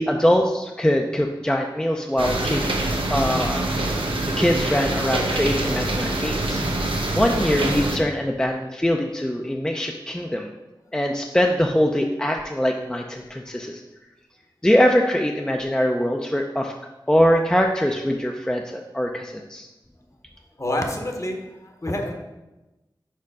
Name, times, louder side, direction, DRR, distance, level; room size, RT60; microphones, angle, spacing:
voice 1, 0.0-3.7 4.2-6.6 6.9-10.5 10.9-13.8 14.6-16.7 17.1-19.7, equal, 10° left, 1 dB, 0.4 m, -22 dB
sound 1, 2.2-8.0, right 2 dB, 90° right, 0.8 m, -25 dB
voice 2, 20.6-21.4 21.6-22.1, left 1 dB, 35° left, 3 dB, 0.9 m, -27 dB
4.8 x 4.5 x 4.8 m, 1.1 s
wide cardioid pair, 55°, 9 cm